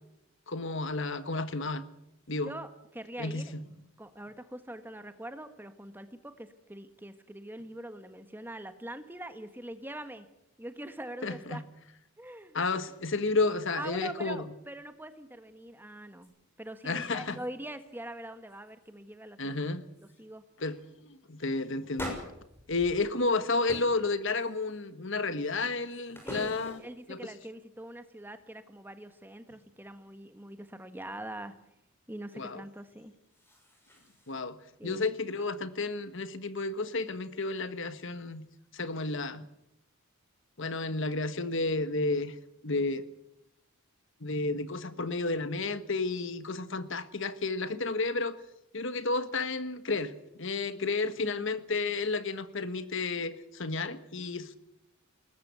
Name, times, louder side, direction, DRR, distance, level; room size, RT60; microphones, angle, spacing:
voice 1, 0.5-1.8 2.3-2.5 3.2-3.5 11.2-11.6 12.5-14.4 16.8-17.4 19.4-19.8 20.6-22.2 22.7-26.8 27.1-27.3 32.3-32.6 34.3-34.6 34.8-38.5 38.7-39.4 40.6-42.3 42.6-43.0 44.2-48.4 48.7-54.6, left 3 dB, 60° left, 12 dB, 1.4 m, -31 dB
voice 2, 2.4-3.5 4.0-10.3 10.6-11.6 12.2-12.6 13.7-16.3 16.6-19.7 20.0-20.4 26.2-31.5 32.1-33.1 34.8-35.0 51.2-51.5, right 1 dB, 10° right, 9 dB, 1.5 m, -43 dB
sound 1, 16.2-16.3 16.7-17.5 17.7-18.1 18.5-18.9 19.5-19.6 19.9-20.2 20.6-20.8 21.9-23.3 23.7-24.0 24.4-24.9 25.4-27.0 33.0-34.4, equal, 10° left, 6.4 m, -45 dB
21.5 x 19.5 x 8.3 m, 0.83 s
head